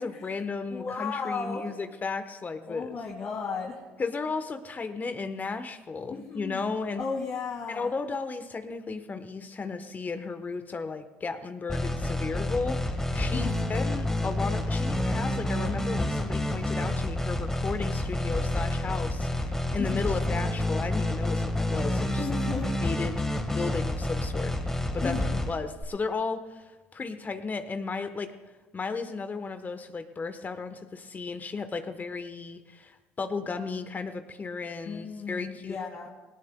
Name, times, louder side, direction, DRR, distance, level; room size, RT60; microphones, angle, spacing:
voice 1, 0.0-3.0 4.0-7.0 7.7-22.3 22.6-23.2 23.5-25.2 25.5-28.3 28.7-35.8, left 4 dB, 30° left, 9 dB, 1.0 m, -34 dB
voice 2, 0.7-1.7 2.6-3.8 6.1-7.9 13.3-13.7 19.8-20.2 22.2-22.7 25.0-25.4 34.9-36.1, left 5 dB, 50° left, -2 dB, 2.2 m, -35 dB
sound 1, 11.7-25.8, left 1 dB, 10° left, 1.5 m, -29 dB
19.5 x 18.0 x 2.2 m, 1.2 s
hypercardioid pair, 65°, 6 cm